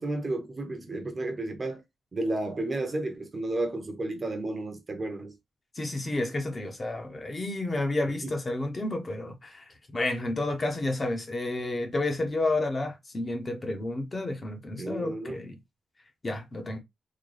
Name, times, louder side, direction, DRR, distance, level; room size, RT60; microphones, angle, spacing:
voice 1, 0.0-1.8 2.1-5.3 8.2-8.3 14.8-15.4, right 2 dB, 25° right, 0.7 m, -32 dB
voice 2, 5.7-9.6 9.9-15.6 16.2-16.8, left 2 dB, 25° left, 0.6 m, -30 dB
3.8 x 2.2 x 3.2 m
wide cardioid pair, 170°, 0 cm